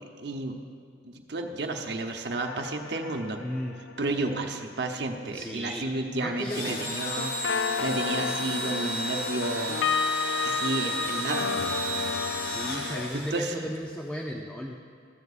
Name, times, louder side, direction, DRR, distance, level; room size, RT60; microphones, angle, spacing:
voice 1, 0.2-0.5 1.1-3.4 4.0-9.8 10.4-13.7, right 2 dB, 60° right, 3 dB, 0.9 m, -32 dB
sound 1, 2.4-4.5 7.2-13.1, left 6 dB, 80° left, 0.3 m, -32 dB
voice 2, 3.4-3.8 5.3-5.8 6.1-6.8 12.4-14.8, equal, 10° left, 0 dB, 0.5 m, -35 dB
Engine / Drill, 6.4-13.8, right 1 dB, 50° left, 1.6 m, -33 dB
15.0 x 13.5 x 2.5 m, 2.3 s
head